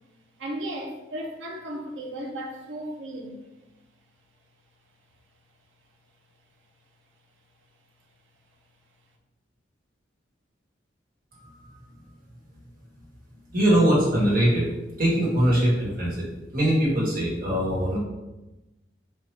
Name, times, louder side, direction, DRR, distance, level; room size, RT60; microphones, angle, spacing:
voice 1, 0.4-3.4, right 1 dB, 90° right, 0 dB, 0.6 m, -35 dB
voice 2, 11.3-11.7 13.5-14.7 15.0-16.2 16.5-18.0, right 1 dB, 50° right, -6 dB, 1.3 m, -22 dB
4.5 x 2.3 x 3.2 m, 1.0 s
head